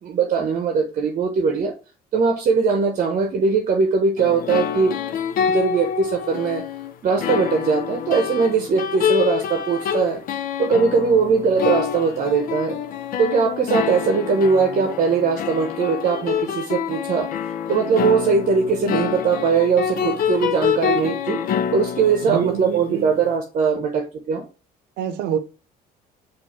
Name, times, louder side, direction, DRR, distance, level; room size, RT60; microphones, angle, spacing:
voice 1, 0.0-1.7 2.1-5.0 5.5-6.6 7.0-10.2 10.6-12.8 13.2-17.3 17.7-21.4 21.7-24.4, right 5 dB, 50° right, 0.8 m, -20 dB
sound 1, 4.2-23.1, left 8 dB, 60° left, 0.6 m, -26 dB
voice 2, 22.2-23.1 25.0-25.4, right 9 dB, 90° right, 0.7 m, -26 dB
4.6 x 2.6 x 4.3 m
cardioid pair, 110°, 17 cm